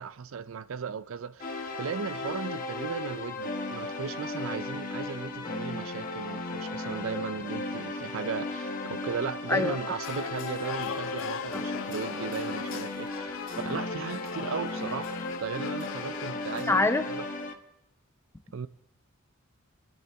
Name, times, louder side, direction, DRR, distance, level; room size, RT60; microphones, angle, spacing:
voice 1, 0.0-17.2 18.5-18.7, right 6 dB, 70° right, 0.5 m, -36 dB
sound 1, 1.4-17.5, left 2 dB, 40° left, 1.2 m, -35 dB
sound 2, 10.0-16.7, left 7 dB, 65° left, 0.5 m, -40 dB
voice 2, 16.7-17.0, left 2 dB, 10° left, 0.5 m, -24 dB
29.0 x 10.5 x 3.5 m
head